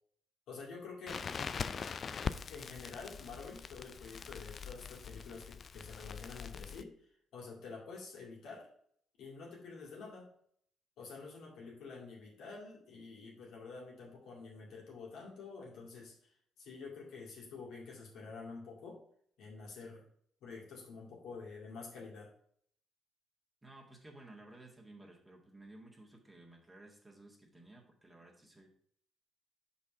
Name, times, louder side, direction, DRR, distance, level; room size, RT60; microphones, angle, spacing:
voice 1, 0.5-1.4 2.5-8.7 9.2-10.3 11.0-19.0 19.4-20.0 20.4-22.3, left 4 dB, 70° left, -3 dB, 2.1 m, -48 dB
Crackle, 1.1-6.8, left 6 dB, 50° left, 0.4 m, -42 dB
voice 2, 23.6-28.7, right 2 dB, 15° right, -1 dB, 1.9 m, -56 dB
5.4 x 4.3 x 5.0 m, 0.65 s
hypercardioid pair, 50°, 0 cm